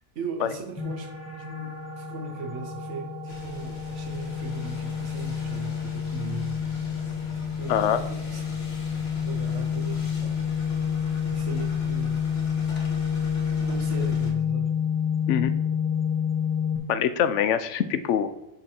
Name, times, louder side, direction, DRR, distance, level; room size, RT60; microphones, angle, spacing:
voice 1, 0.1-6.6 7.6-8.4 8.9-10.4 11.3-12.2 13.6-14.7, right 3 dB, 85° right, 5 dB, 1.4 m, -38 dB
sound 1, 0.8-16.8, left 7 dB, 15° left, 1.4 m, -29 dB
sound 2, 3.3-14.3, left 1 dB, 60° left, 1.6 m, -42 dB
voice 2, 7.7-8.0 15.3-15.5 16.9-18.3, left 9 dB, 80° left, 11 dB, 0.9 m, -24 dB
11.0 x 3.8 x 4.3 m, 0.99 s
omnidirectional pair, 1.2 m